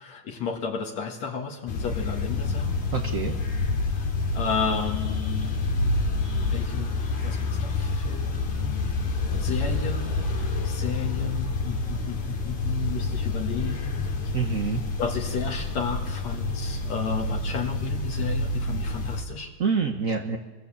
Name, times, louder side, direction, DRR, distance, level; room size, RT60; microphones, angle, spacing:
voice 1, 0.0-2.7 3.9-4.1 4.3-6.1 6.5-9.0 9.3-14.0 15.0-19.5, left 6 dB, 65° left, 1 dB, 2.9 m, -33 dB
sound 1, 1.7-19.2, left 3 dB, 85° left, 4.1 m, -28 dB
voice 2, 2.9-3.3 14.3-14.8 19.6-20.4, right 5 dB, 55° right, 3 dB, 0.9 m, -26 dB
24.0 x 23.0 x 7.3 m, 1.2 s
omnidirectional pair, 3.3 m